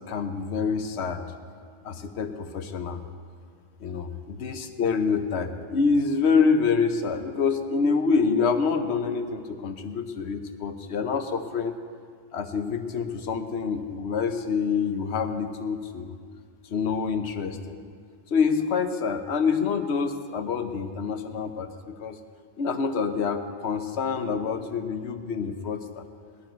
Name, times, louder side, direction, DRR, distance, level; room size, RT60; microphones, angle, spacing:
voice 1, 0.1-1.3 1.8-3.0 3.8-11.8 12.3-16.1 16.7-17.8 18.3-22.2 22.6-26.0, left 5 dB, 75° left, 8 dB, 1.1 m, -26 dB
19.0 x 11.5 x 4.5 m, 2.1 s
omnidirectional pair, 1.1 m